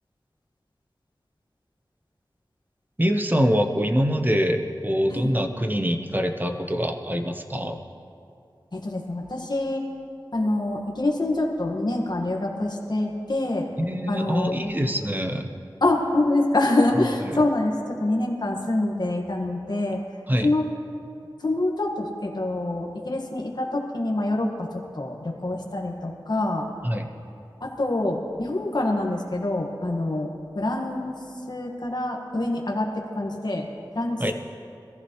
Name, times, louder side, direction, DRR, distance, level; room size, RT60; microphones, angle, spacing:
voice 1, 3.0-7.8 13.8-15.5 17.3-17.4 20.3-20.5 26.8-27.1 34.2-34.3, equal, 20° right, 5 dB, 1.0 m, -24 dB
voice 2, 8.7-9.8 10.3-13.7 14.1-14.7 15.8-20.0 20.4-20.6 21.4-26.7 27.6-31.2 31.5-32.9 33.1-33.7 33.9-34.3, left 2 dB, 55° left, 0 dB, 1.7 m, -26 dB
22.0 x 14.5 x 3.2 m, 2.5 s
wide cardioid pair, 65°, 8 cm